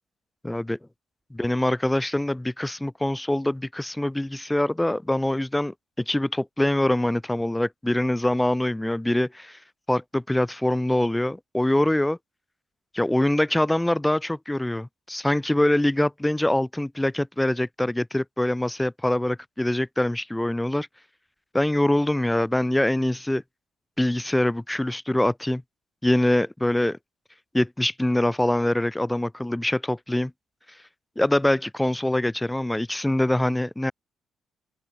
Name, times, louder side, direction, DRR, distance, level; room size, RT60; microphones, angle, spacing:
voice 1, 0.4-0.8 1.3-9.6 9.9-12.2 12.9-20.9 21.5-23.4 24.0-25.6 26.0-27.0 27.5-30.3 31.2-33.9, left 1 dB, 10° left, 0.6 m, -24 dB
open air
cardioid pair, 90°, 0 cm